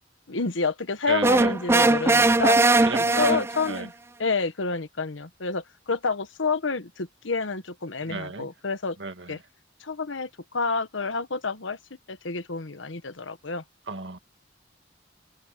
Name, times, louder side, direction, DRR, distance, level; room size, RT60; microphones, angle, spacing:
voice 1, 0.3-2.6 3.2-3.9 4.2-9.0 9.3-9.4 9.8-11.8 12.1-13.6, left 4 dB, 85° left, 1.3 m, -29 dB
voice 2, 1.1-1.6 2.8-3.9 8.0-8.5 9.0-9.4 13.9-14.2, right 4 dB, 70° right, 2.1 m, -33 dB
sound 1, 1.2-3.8, right 2 dB, 15° right, 0.3 m, -20 dB
head